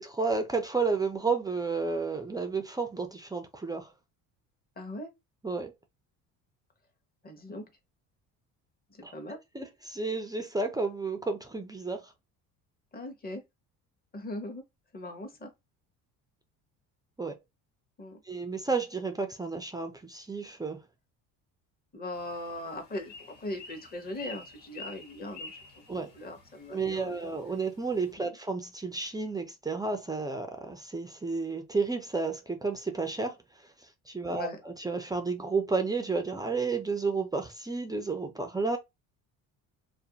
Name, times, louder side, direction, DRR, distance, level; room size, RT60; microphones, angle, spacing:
voice 1, 0.0-3.9 5.4-5.7 9.0-9.1 9.5-12.1 17.2-17.4 18.3-20.8 25.9-26.1 26.7-33.4 34.1-38.8, right 4 dB, 10° right, 0.3 m, -31 dB
voice 2, 4.8-5.1 7.2-7.7 8.9-9.4 12.9-13.4 14.1-14.6 14.9-15.5 18.0-18.2 21.9-25.8 26.1-27.1 28.2-28.4 34.3-34.6, left 1 dB, 25° left, 0.8 m, -39 dB
sound 1, 22.1-28.1, left 3 dB, 75° left, 1.5 m, -49 dB
2.5 x 2.1 x 2.8 m
supercardioid pair, 90°, 38 cm